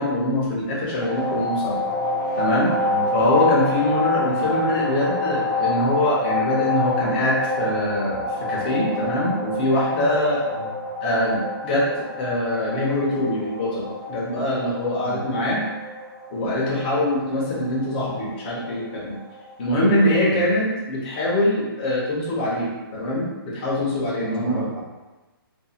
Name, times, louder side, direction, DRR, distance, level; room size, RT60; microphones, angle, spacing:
voice 1, 0.0-1.8 2.4-2.7 3.1-10.4 11.0-11.8 12.2-15.6 16.3-19.2 19.6-24.7, left 1 dB, 20° left, -5 dB, 0.6 m, -23 dB
sound 1, 1.0-19.6, left 2 dB, 20° right, 0.7 m, -28 dB
voice 2, 24.2-24.8, right 4 dB, 60° right, -1 dB, 0.6 m, -33 dB
2.4 x 2.2 x 2.7 m, 1.2 s
hypercardioid pair, 170°, 13 cm